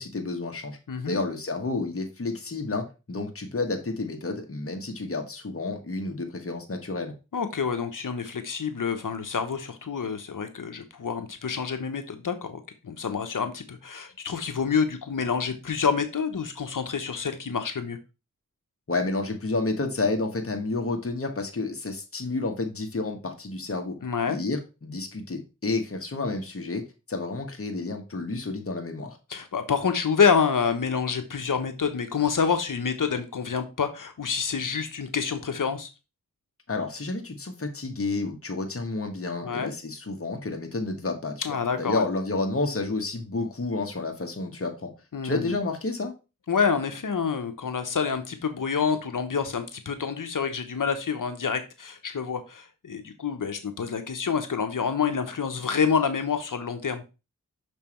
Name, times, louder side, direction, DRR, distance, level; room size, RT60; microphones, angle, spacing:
voice 1, 0.0-0.8 1.1-7.1 18.9-24.0 24.2-26.8 27.1-29.2 36.7-44.9 45.2-46.1, left 3 dB, 40° left, 4 dB, 1.4 m, -30 dB
voice 2, 0.9-1.2 7.3-18.0 24.0-24.4 29.3-35.9 39.4-39.7 41.4-42.0 45.1-45.5 46.5-57.0, left 6 dB, 65° left, 8 dB, 1.0 m, -27 dB
6.2 x 3.4 x 4.4 m, 0.29 s
cardioid pair, 45°, 34 cm